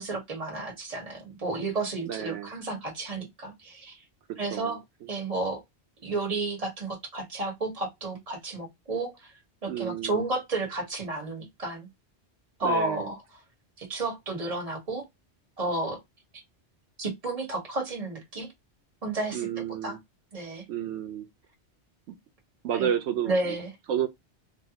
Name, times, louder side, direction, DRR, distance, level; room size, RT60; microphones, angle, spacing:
voice 1, 0.0-4.0 4.4-4.8 5.1-5.6 6.0-9.3 9.6-11.9 12.6-13.2 13.8-15.1 15.6-16.0 17.0-18.5 19.0-19.5 19.8-20.0 20.3-20.6 22.7-22.9 23.3-23.7, right 2 dB, 35° right, 1.2 m, -32 dB
voice 2, 2.0-2.5 4.3-4.8 9.7-10.2 12.6-13.1 19.3-20.0 20.7-21.3 22.1-22.2 22.6-23.6 23.9-24.1, right 9 dB, 90° right, 0.9 m, -31 dB
3.2 x 2.7 x 2.8 m
omnidirectional pair, 1.1 m